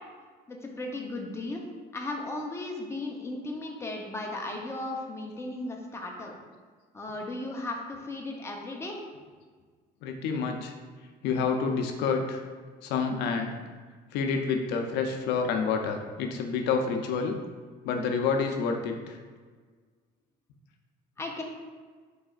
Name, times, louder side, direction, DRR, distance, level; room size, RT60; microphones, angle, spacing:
voice 1, 0.5-1.6 1.9-6.3 6.9-9.0 21.2-21.4, left 2 dB, 15° left, 0 dB, 0.7 m, -36 dB
voice 2, 10.0-10.7 11.2-12.4 12.8-13.5 14.1-17.4 17.8-19.2, left 5 dB, 90° left, 4 dB, 0.5 m, -28 dB
4.9 x 4.1 x 2.4 m, 1.5 s
cardioid pair, 110°, 17 cm